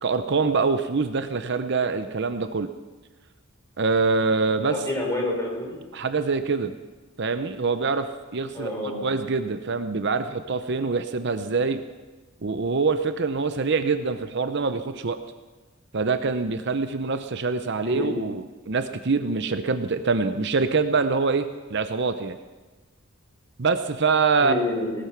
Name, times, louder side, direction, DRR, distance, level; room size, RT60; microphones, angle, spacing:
voice 1, 0.0-2.7 3.8-4.8 5.9-6.7 7.2-11.8 12.4-15.2 15.9-22.4 23.6-24.5, right 4 dB, 55° right, 10 dB, 0.7 m, -25 dB
voice 2, 4.7-5.8 8.5-9.1 17.8-18.1 24.4-25.0, left 1 dB, 15° left, -1 dB, 4.4 m, -28 dB
18.5 x 12.5 x 5.9 m, 1.2 s
head